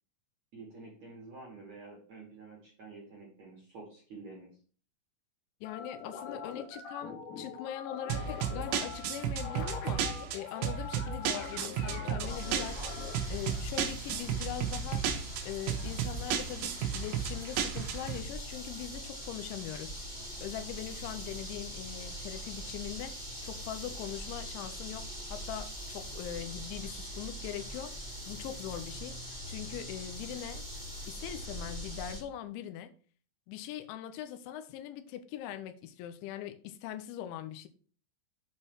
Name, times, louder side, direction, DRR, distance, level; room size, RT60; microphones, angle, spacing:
voice 1, 0.5-4.5, right 3 dB, 55° right, 2.0 m, -49 dB
voice 2, 5.6-15.1 15.4-20.0 20.4-28.0 28.3-29.2 29.5-30.6 31.1-32.9 33.5-37.7, left 11 dB, 85° left, 2.7 m, -41 dB
sound 1, 5.7-13.2, left 6 dB, 60° left, 3.0 m, -43 dB
sound 2, 8.1-18.2, right 8 dB, 75° right, 2.8 m, -33 dB
sound 3, 12.2-32.2, equal, 25° left, 1.5 m, -42 dB
8.4 x 4.3 x 6.2 m
omnidirectional pair, 5.9 m